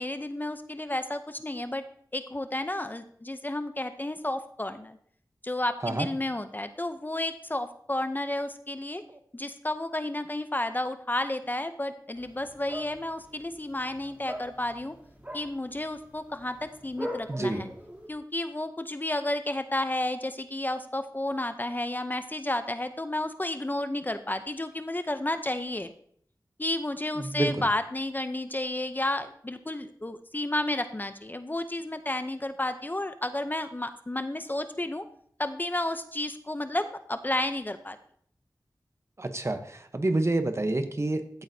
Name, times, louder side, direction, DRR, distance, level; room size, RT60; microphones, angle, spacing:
voice 1, 0.0-1.8 2.1-5.0 5.4-9.0 9.3-15.0 15.3-17.7 18.1-25.9 26.6-35.1 35.4-38.0, left 1 dB, 25° left, 9 dB, 0.6 m, -32 dB
sound 1, 12.2-18.1, equal, 20° right, 3.0 m, -42 dB
voice 2, 17.3-17.6 27.2-27.6 39.2-41.4, right 2 dB, 40° right, 8 dB, 0.9 m, -28 dB
14.5 x 8.7 x 2.7 m, 0.62 s
wide cardioid pair, 75°, 7 cm